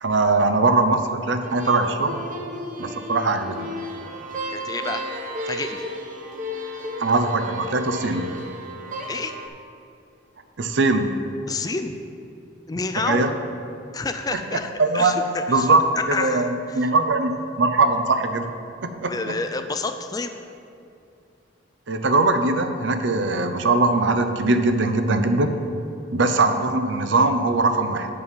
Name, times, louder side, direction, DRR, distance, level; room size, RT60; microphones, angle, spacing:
voice 1, 0.0-2.2 2.8-3.7 7.0-8.3 10.6-11.1 13.1-13.3 14.8-15.1 15.5-15.8 16.1-18.5 18.8-19.1 21.9-25.5 26.1-28.1, right 3 dB, 70° right, 7 dB, 0.6 m, -21 dB
sound 1, 1.4-9.5, equal, 40° right, 0.8 m, -33 dB
voice 2, 4.5-5.0 5.5-5.8 9.1-9.3 11.5-11.9 12.7-13.2 13.9-15.7 16.1-16.9 19.1-20.3, left 3 dB, 20° left, 8 dB, 0.3 m, -29 dB
9.0 x 6.7 x 5.2 m, 2.6 s
head